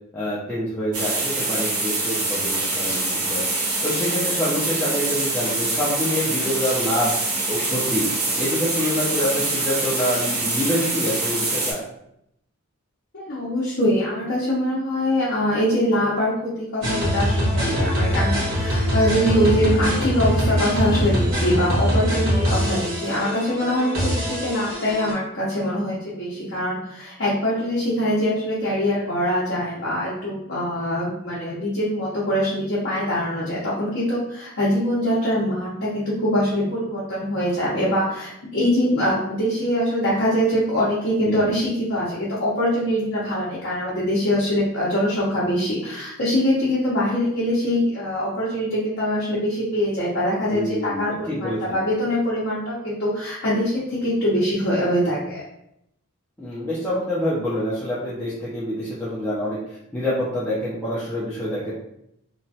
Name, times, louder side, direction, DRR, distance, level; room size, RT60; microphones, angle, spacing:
voice 1, 0.1-8.1 8.4-11.8 41.2-41.4 50.5-51.8 56.4-61.7, equal, 10° left, -10 dB, 0.4 m, -26 dB
sound 1, 0.9-11.7, right 2 dB, 85° right, 0.8 m, -25 dB
voice 2, 13.1-55.4, equal, 50° left, -8 dB, 0.7 m, -23 dB
sound 2, 16.8-25.1, equal, 60° right, 1.2 m, -23 dB
2.9 x 2.2 x 2.7 m, 0.77 s
head